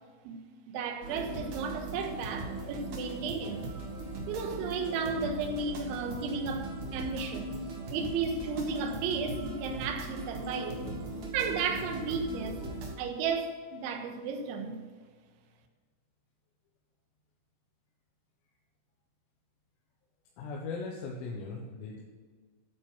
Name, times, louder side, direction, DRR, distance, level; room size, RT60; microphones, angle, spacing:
voice 1, 0.7-3.7 4.3-7.6 7.9-10.8 11.3-12.6 13.0-14.8, right 5 dB, 75° right, 3.5 m, -34 dB
sound 1, 1.0-12.9, right 2 dB, 50° right, 2.4 m, -39 dB
voice 2, 20.4-22.0, left 4 dB, 85° left, 4.1 m, -38 dB
12.5 x 8.7 x 6.3 m
omnidirectional pair, 5.9 m